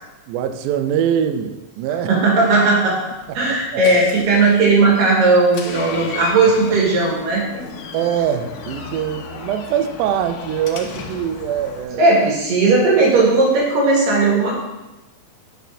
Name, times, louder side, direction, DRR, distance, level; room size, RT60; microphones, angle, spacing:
voice 1, 0.3-2.2 3.7-3.8 7.9-12.1, right 9 dB, 90° right, 8 dB, 1.7 m, -23 dB
voice 2, 2.1-3.0 3.3-7.6 12.0-14.6, right 3 dB, 70° right, -4 dB, 3.4 m, -16 dB
Door, 3.1-11.8, left 5 dB, 90° left, 2.5 m, -35 dB
8.2 x 6.2 x 2.7 m, 1.0 s
omnidirectional pair, 4.1 m